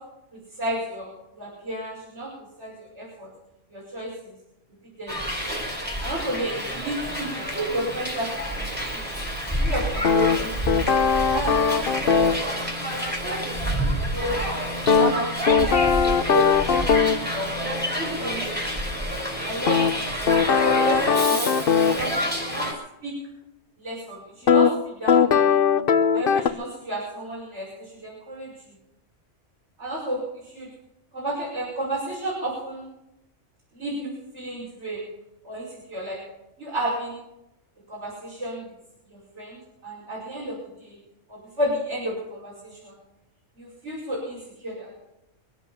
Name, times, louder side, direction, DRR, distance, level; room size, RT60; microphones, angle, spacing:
voice 1, 0.3-2.3 2.6-3.3 3.7-4.1 5.0-5.2 6.0-9.2 9.6-10.6 11.3-12.5 12.9-13.4 13.9-14.5 14.9-17.5 18.0-18.6 19.4-20.0 20.6-21.5 21.8-22.1 22.5-22.7 23.0-23.1 23.8-25.5 26.1-28.5 29.8-30.7 31.1-32.8 33.7-35.0 35.4-36.2 36.6-37.2 37.9-38.6 39.1-41.0 41.3-43.0 43.6-44.9, right 1 dB, 65° right, -6 dB, 6.0 m, -32 dB
Hiss, 5.1-22.7, equal, 10° right, 4.9 m, -28 dB
sound 1, 10.0-12.4 14.9-17.2 19.7-22.0 24.5-24.7 25.1-26.5, left 6 dB, 50° left, 1.0 m, -20 dB
24.0 x 8.3 x 7.2 m, 0.87 s
omnidirectional pair, 1.3 m